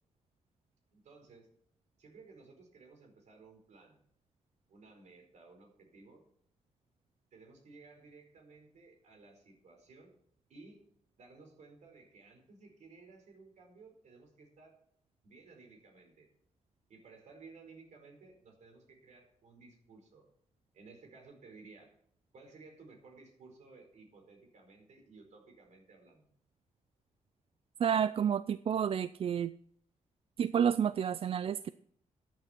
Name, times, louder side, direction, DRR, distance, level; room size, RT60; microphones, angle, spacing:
voice 1, 0.9-1.5 2.0-4.0 4.7-6.2 7.3-10.1 10.5-10.8 11.2-14.7 15.2-16.3 16.9-20.3 20.7-22.0 22.3-26.3, right 3 dB, 70° right, 3 dB, 4.7 m, -56 dB
voice 2, 27.8-29.5 30.4-31.7, right 8 dB, 50° right, 15 dB, 0.4 m, -30 dB
14.0 x 9.2 x 4.4 m, 0.66 s
cardioid pair, 105°, 13 cm